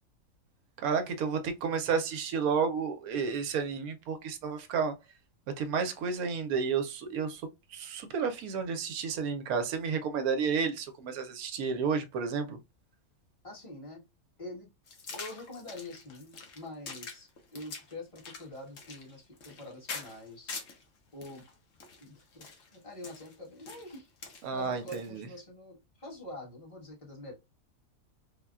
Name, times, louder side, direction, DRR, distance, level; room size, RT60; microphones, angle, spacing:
voice 1, 0.8-4.9 5.6-7.4 7.7-12.6 24.4-25.3, right 6 dB, 80° right, 1.1 m, -31 dB
voice 2, 13.4-14.0 14.4-14.7 15.1-20.6 21.1-21.4 22.0-22.4 22.7-24.1 24.5-27.3, left 1 dB, 25° left, 1.1 m, -45 dB
sound 1, 14.9-20.8 21.2-25.2, left 4 dB, 60° left, 0.9 m, -45 dB
3.6 x 2.1 x 2.3 m
omnidirectional pair, 1.5 m